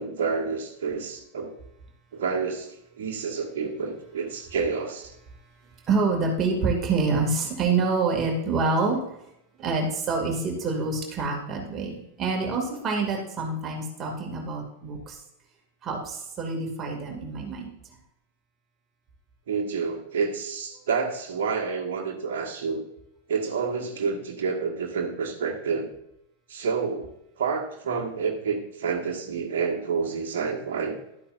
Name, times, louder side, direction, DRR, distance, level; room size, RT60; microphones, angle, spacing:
voice 1, 0.0-1.5 2.1-5.1 19.5-22.8 23.3-25.9 26.5-27.1 27.4-31.0, right 5 dB, 55° right, 1 dB, 1.6 m, -29 dB
voice 2, 5.9-9.2 9.6-15.2 15.8-17.7, right 4 dB, 25° right, 1 dB, 2.3 m, -27 dB
12.5 x 8.5 x 2.6 m, 0.78 s
figure-of-eight pair, 90°, 0 cm